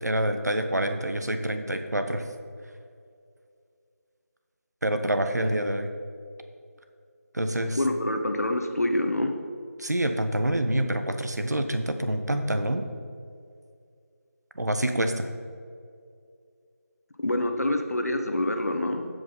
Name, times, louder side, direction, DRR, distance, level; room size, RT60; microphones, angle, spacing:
voice 1, 0.0-2.2 4.8-5.9 7.3-7.8 9.8-12.9 14.5-15.3, right 1 dB, 85° right, 7 dB, 1.1 m, -27 dB
voice 2, 7.8-9.3 17.2-19.1, left 1 dB, 70° left, 5 dB, 1.2 m, -26 dB
15.5 x 5.2 x 3.9 m, 2.3 s
figure-of-eight pair, 170°, 9 cm